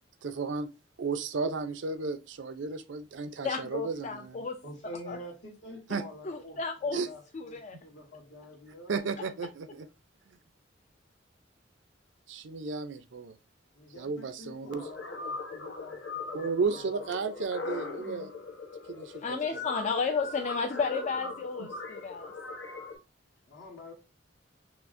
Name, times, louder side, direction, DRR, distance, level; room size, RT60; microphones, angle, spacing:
voice 1, 0.2-0.7 1.0-4.5 5.9-6.0 6.9-7.1 8.9-9.9 10.3-10.4 12.3-13.4 13.9-14.9 16.3-18.3 18.9-19.4, right 4 dB, 75° right, 0.5 m, -33 dB
voice 2, 3.4-4.6 5.1-5.2 6.2-7.0 7.3-7.8 19.2-22.3, left 5 dB, 40° left, 0.3 m, -32 dB
voice 3, 4.6-8.9 13.7-17.5 23.5-23.9, left 1 dB, 70° left, 1.3 m, -47 dB
sound 1, 14.7-23.0, left 3 dB, 85° left, 0.9 m, -40 dB
5.7 x 2.0 x 2.5 m
head